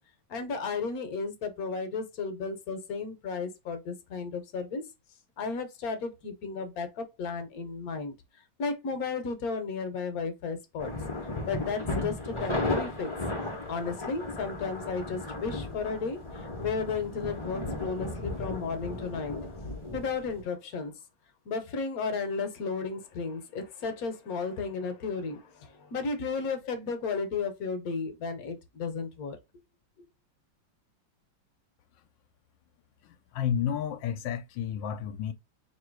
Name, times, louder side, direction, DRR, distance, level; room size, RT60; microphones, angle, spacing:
voice 1, 0.3-4.8 5.4-8.1 8.6-10.9 11.4-13.1 13.7-19.6 19.9-20.9 21.5-29.4 30.0-30.1, left 4 dB, 60° left, 1.2 m, -34 dB
sound 1, 10.8-20.4, left 2 dB, 30° left, 0.6 m, -35 dB
voice 2, 33.0-35.3, left 8 dB, 80° left, 1.3 m, -31 dB
3.1 x 2.9 x 4.5 m
omnidirectional pair, 2.0 m